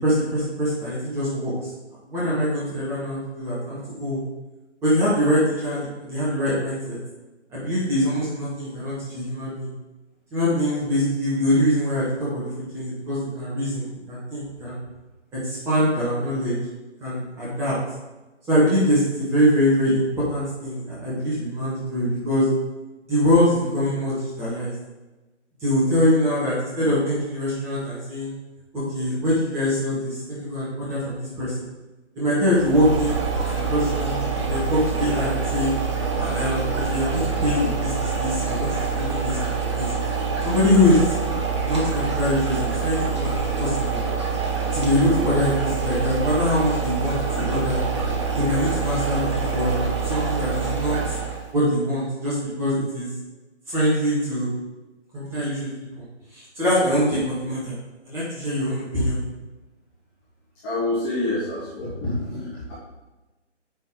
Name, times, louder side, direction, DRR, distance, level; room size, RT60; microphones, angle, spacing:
voice 1, 0.0-1.5 2.1-4.2 4.8-7.0 7.5-9.7 10.3-14.8 15.3-16.5 17.0-17.7 18.5-22.5 23.1-24.7 25.6-28.3 28.7-31.6 32.1-33.2 33.5-35.7 36.2-39.9 40.4-41.1 41.6-44.0 44.7-47.8 48.3-49.8 50.0-51.0 51.5-53.1 53.7-54.5 55.1-55.6 56.0-56.1 56.3-57.7 58.0-59.2, equal, 5° right, -9 dB, 1.6 m, -23 dB
sound 1, 32.5-51.5, right 5 dB, 25° right, 0.9 m, -26 dB
voice 2, 60.6-62.7, left 2 dB, 10° left, -11 dB, 1.2 m, -27 dB
9.2 x 4.3 x 3.9 m, 1.1 s
figure-of-eight pair, 145°, 37 cm